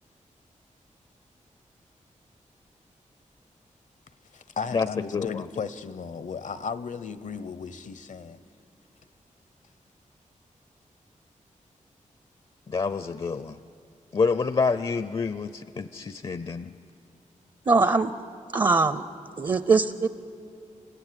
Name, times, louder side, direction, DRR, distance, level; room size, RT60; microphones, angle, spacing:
voice 1, 4.3-8.4, left 6 dB, 70° left, 0.8 m, -35 dB
voice 2, 5.1-5.4 12.7-13.6 14.1-16.7, left 4 dB, 40° left, 0.5 m, -27 dB
voice 3, 17.7-18.1 18.5-19.0 19.4-20.1, right 4 dB, 35° right, 0.6 m, -21 dB
29.5 x 16.0 x 9.9 m
wide cardioid pair, 170°, 13 cm